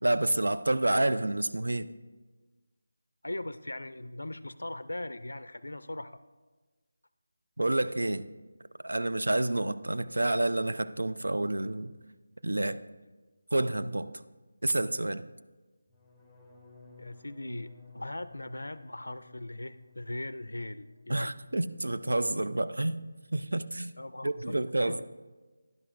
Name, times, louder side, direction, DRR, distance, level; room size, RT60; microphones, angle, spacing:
voice 1, 0.0-1.9 7.6-8.3 8.8-11.9 12.4-12.8 13.5-14.1 14.6-15.2 21.1-23.0 23.3-23.9 24.2-25.0, right 1 dB, 85° right, 12 dB, 0.4 m, -29 dB
voice 2, 3.2-6.2 17.0-21.3 24.0-25.0, left 1 dB, 90° left, 14 dB, 0.3 m, -39 dB
sound 1, 15.9-21.8 22.1-22.6 22.9-23.3, left 5 dB, 5° left, 0.8 m, -57 dB
11.0 x 10.0 x 2.5 m, 1.3 s
figure-of-eight pair, 165°, 0 cm